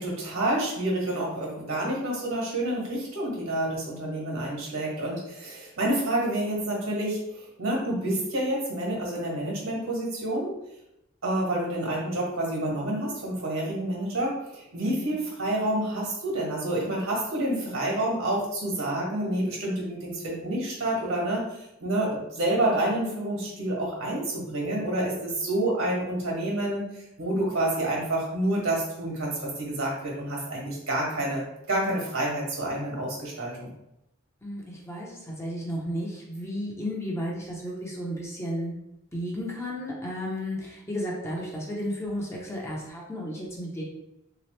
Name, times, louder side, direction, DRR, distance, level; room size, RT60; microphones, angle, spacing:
voice 1, 0.0-10.5 11.2-33.7, right 1 dB, 75° right, -3 dB, 1.5 m, -28 dB
voice 2, 14.8-15.2 34.4-38.7 39.1-43.8, equal, 15° left, -3 dB, 0.7 m, -33 dB
3.5 x 2.9 x 3.2 m, 0.86 s
head